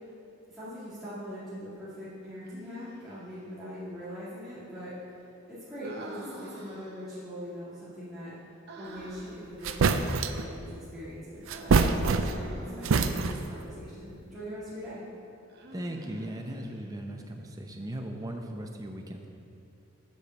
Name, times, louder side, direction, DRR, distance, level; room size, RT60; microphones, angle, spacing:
voice 1, 0.5-4.9 5.5-8.3 8.8-15.0, equal, ahead, -14 dB, 1.9 m, -42 dB
Human voice, 2.4-3.3 5.8-7.2 8.7-9.5 11.4-13.2 15.5-17.1, right 1 dB, 50° right, 1.0 m, -47 dB
sound 1, 9.2-9.3 9.6-10.5 11.5-12.5 12.8-13.5, right 4 dB, 70° right, 0.4 m, -25 dB
voice 2, 15.7-19.3, right 1 dB, 15° right, 3 dB, 0.6 m, -38 dB
8.1 x 4.9 x 6.9 m, 2.8 s
head